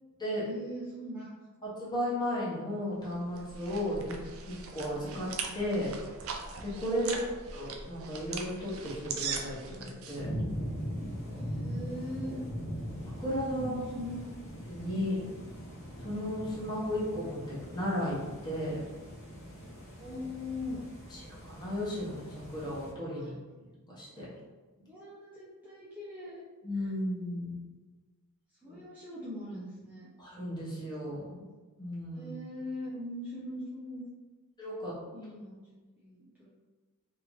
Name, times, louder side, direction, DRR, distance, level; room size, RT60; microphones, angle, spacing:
voice 1, 0.4-1.3 11.3-12.4 13.6-14.3 14.9-15.4 20.0-20.8 23.2-23.3 24.9-26.4 26.8-26.9 28.6-30.1 32.2-34.1 35.1-35.5 36.0-36.5, left 1 dB, 10° right, -9 dB, 0.5 m, -41 dB
voice 2, 1.6-4.2 4.5-5.3 5.5-5.9 6.6-7.1 7.5-10.3 13.2-13.8 14.7-15.2 16.0-18.2 18.4-18.8 21.1-24.3 24.8-24.9 26.6-27.6 28.6-28.7 30.2-31.5 31.8-32.3 34.6-34.9, equal, 20° left, -7 dB, 1.0 m, -34 dB
sound 1, 3.1-10.2, right 5 dB, 65° right, 0.4 m, -40 dB
sound 2, 10.1-22.9, equal, 65° left, 0.9 m, -41 dB
2.9 x 2.5 x 3.0 m, 1.3 s
head